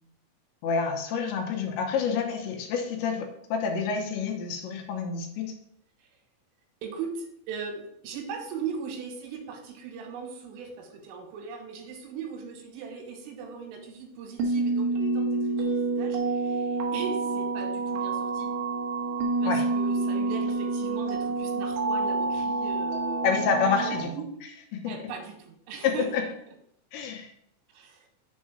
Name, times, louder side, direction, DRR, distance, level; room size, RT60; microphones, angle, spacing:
voice 1, 0.6-5.5 19.5-19.6 23.2-24.1 24.7-24.8 25.8-26.2 26.9-27.3, left 6 dB, 80° left, 2 dB, 2.9 m, -28 dB
voice 2, 6.8-18.5 19.4-24.4 24.9-26.3 27.7-28.1, right 5 dB, 90° right, 3 dB, 3.7 m, -39 dB
sound 1, 14.4-24.0, right 3 dB, 70° right, 2.8 m, -28 dB
7.3 x 3.6 x 6.1 m, 0.73 s
omnidirectional pair, 5.6 m